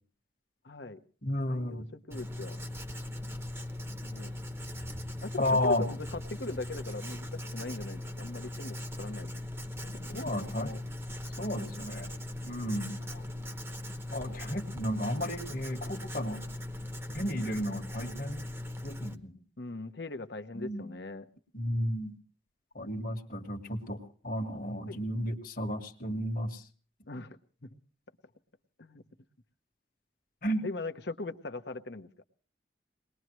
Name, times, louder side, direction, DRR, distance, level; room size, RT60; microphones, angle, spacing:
voice 1, 0.6-1.0 1.5-2.6 4.0-4.3 5.2-7.3 7.5-9.4 9.8-10.8 13.0-13.4 19.6-21.3 24.9-25.0 27.1-27.8 28.8-29.0 30.6-32.2, left 2 dB, 65° left, 7 dB, 1.0 m, -40 dB
voice 2, 1.2-1.8 5.4-5.8 10.1-10.7 11.4-12.1 12.4-13.0 14.1-16.4 17.1-18.5 18.8-19.4 20.5-20.9 21.5-22.2 22.7-26.6 30.4-30.6, left 1 dB, 50° left, 5 dB, 1.6 m, -33 dB
Writing, 2.1-19.2, left 1 dB, 15° right, 0.9 m, -40 dB
23.0 x 20.0 x 3.1 m, 0.40 s
head